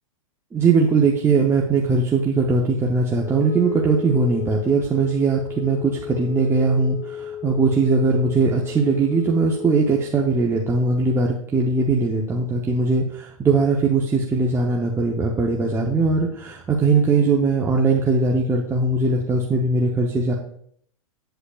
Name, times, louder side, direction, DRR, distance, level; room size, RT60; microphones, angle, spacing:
voice 1, 0.5-20.3, right 4 dB, 15° right, -2 dB, 0.8 m, -20 dB
Wind instrument woodwind instrument, 3.1-10.2, left 8 dB, 65° left, 1.2 m, -34 dB
8.2 x 8.0 x 2.4 m, 0.64 s
hypercardioid pair, 115°, 18 cm